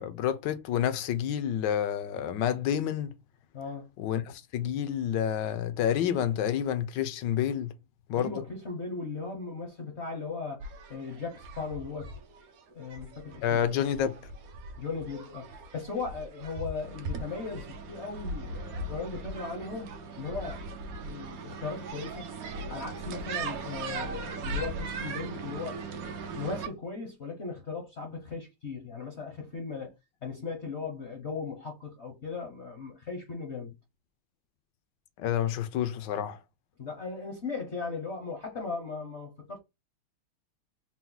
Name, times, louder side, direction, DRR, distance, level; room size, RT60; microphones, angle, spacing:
voice 1, 0.0-3.1 4.0-7.7 8.1-8.3 13.4-14.2 35.2-36.4, left 9 dB, 70° left, 1.1 m, -29 dB
voice 2, 3.5-3.9 8.1-12.1 12.7-13.6 14.8-19.9 20.2-20.7 20.9-22.3 22.7-25.8 26.3-30.0 30.2-33.8 36.8-39.6, left 4 dB, 50° left, 0.8 m, -37 dB
sound 1, 10.6-26.7, right 3 dB, 70° right, 0.8 m, -39 dB
4.3 x 2.2 x 3.8 m
omnidirectional pair, 2.3 m